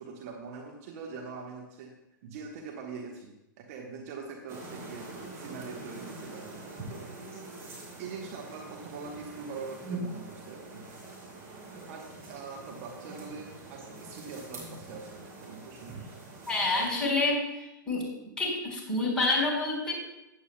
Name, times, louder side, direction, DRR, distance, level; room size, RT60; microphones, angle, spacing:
voice 1, 0.0-1.9 2.2-6.5 6.9-7.0 8.0-10.9 11.9-16.0, right 5 dB, 45° right, 0 dB, 1.3 m, -43 dB
sound 1, 4.5-16.9, right 2 dB, 25° right, 3.9 m, -44 dB
voice 2, 16.5-18.1 18.4-19.9, left 2 dB, 5° left, -6 dB, 4.2 m, -28 dB
15.5 x 9.4 x 2.2 m, 0.91 s
figure-of-eight pair, 100°, 11 cm